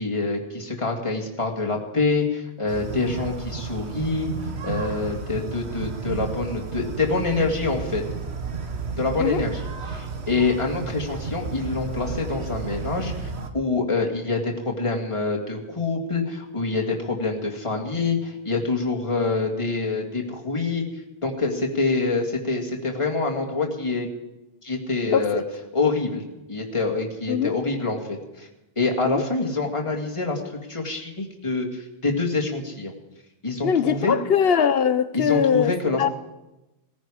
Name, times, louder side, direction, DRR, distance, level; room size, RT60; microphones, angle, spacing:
voice 1, 0.0-4.3 4.6-8.0 9.0-20.8 21.2-24.1 24.6-25.4 25.7-26.2 26.5-28.5 28.8-30.4 30.7-32.9 33.4-34.2 35.1-36.0, left 3 dB, 25° left, 0 dB, 2.2 m, -26 dB
sound 1, 2.7-13.5, right 4 dB, 70° right, 1.6 m, -32 dB
voice 2, 25.1-25.4 27.3-27.5 29.0-29.2 33.6-35.7 36.0-36.1, left 7 dB, 65° left, 14 dB, 0.9 m, -21 dB
19.5 x 15.0 x 4.9 m, 0.98 s
omnidirectional pair, 1.1 m